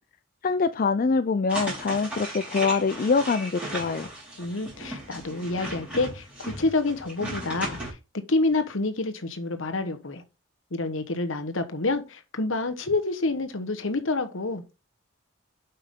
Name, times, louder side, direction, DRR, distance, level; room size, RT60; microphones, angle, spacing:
voice 1, 0.4-4.1, left 4 dB, 40° left, 0.4 m, -24 dB
sound 1, 1.5-7.9, right 1 dB, 5° right, 4.3 m, -36 dB
voice 2, 4.4-8.0 8.3-10.2 10.7-14.6, left 2 dB, 65° left, 1.2 m, -28 dB
8.1 x 5.6 x 3.7 m
head